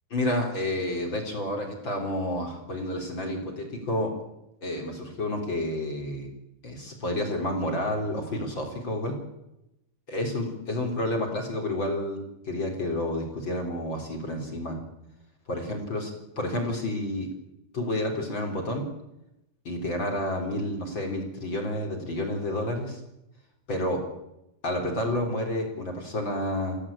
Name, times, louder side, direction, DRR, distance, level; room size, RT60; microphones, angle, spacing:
voice 1, 0.1-4.1 4.6-6.3 6.6-9.2 10.1-12.2 12.4-14.8 15.5-16.1 16.4-17.3 17.7-18.8 19.6-23.0 23.7-24.0 24.6-26.8, left 1 dB, 25° left, 2 dB, 3.9 m, -30 dB
27.5 x 15.5 x 8.7 m, 0.89 s
omnidirectional pair, 5.5 m